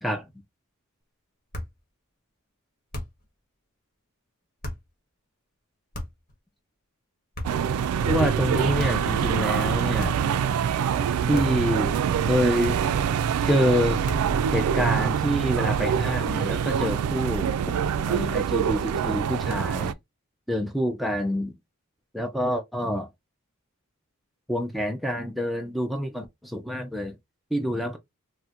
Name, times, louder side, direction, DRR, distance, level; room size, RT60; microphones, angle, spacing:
sound 1, 1.5-1.8 2.9-3.3 4.6-4.9 5.9-6.3 7.3-7.7 8.8-9.1 10.0-10.4 11.3-11.7 12.6-13.0 14.0-14.4, left 1 dB, 40° left, 1.2 m, -36 dB
sound 2, 7.4-19.9, right 8 dB, 80° right, 0.3 m, -25 dB
voice 1, 8.1-10.2 11.3-12.0 12.2-12.8 13.5-14.0 14.5-17.5 18.1-19.9 20.5-21.5 22.1-23.1 24.5-27.2 27.5-28.0, equal, ahead, 0.3 m, -26 dB
4.2 x 2.1 x 2.4 m
head